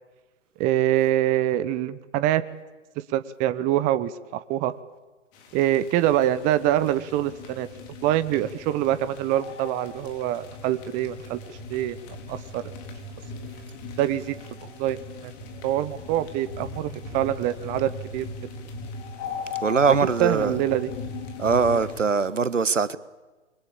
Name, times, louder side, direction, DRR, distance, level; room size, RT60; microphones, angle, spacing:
voice 1, 0.6-2.4 3.1-4.7 5.5-7.7 8.0-11.4 11.7-12.0 12.3-12.6 14.0-14.4 14.8-15.0 15.2-15.3 15.6-18.3 20.2-20.9, right 13 dB, 20° right, 0.9 m, -24 dB
sound 1, 5.3-22.0, left 3 dB, 35° left, 4.4 m, -39 dB
voice 2, 19.6-20.6 21.4-23.0, right 5 dB, 85° right, 1.4 m, -22 dB
26.5 x 23.0 x 8.7 m
figure-of-eight pair, 130°, 37 cm